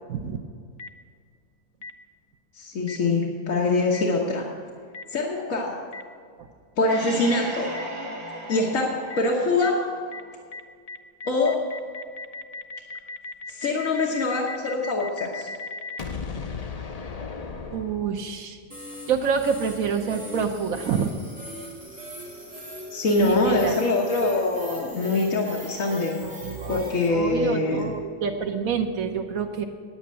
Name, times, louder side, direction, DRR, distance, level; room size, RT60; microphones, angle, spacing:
Boom, 0.8-0.9 1.8-1.9 2.9-3.0 3.9-4.0 4.9-5.0 5.9-6.0 6.9-7.0 7.7-7.8 8.5-8.6 9.1-9.2 9.6-9.7 10.1-10.2 10.5-10.6 10.9-18.4, left 4 dB, 40° left, 0.6 m, -36 dB
voice 1, 2.5-4.4 5.1-5.8 6.8-7.7 8.5-9.8 11.3-11.6 13.5-15.5 22.9-26.2 26.7-27.9, left 3 dB, 75° left, -2 dB, 1.7 m, -24 dB
sound 1, 6.9-10.5, right 1 dB, 45° right, 1.7 m, -37 dB
voice 2, 17.7-18.6 19.1-21.1 23.2-23.8 26.2-29.6, right 6 dB, 80° right, 3 dB, 1.3 m, -27 dB
sound 2, 18.7-27.1, equal, 5° right, 2.9 m, -40 dB
9.4 x 8.9 x 8.8 m, 2.1 s
omnidirectional pair, 1.4 m